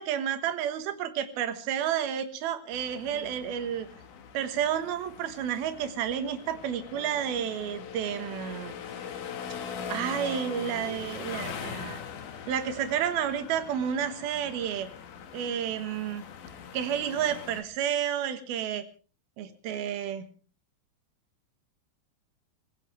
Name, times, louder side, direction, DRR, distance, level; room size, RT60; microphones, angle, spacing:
voice 1, 0.0-3.9 4.3-8.7 9.9-12.0 12.5-14.9 15.3-16.2 16.7-18.8 19.4-20.2, right 9 dB, 80° right, 9 dB, 3.3 m, -31 dB
sound 1, 2.7-17.6, left 7 dB, 60° left, 2.9 m, -41 dB
27.0 x 16.0 x 3.3 m, 0.37 s
omnidirectional pair, 4.4 m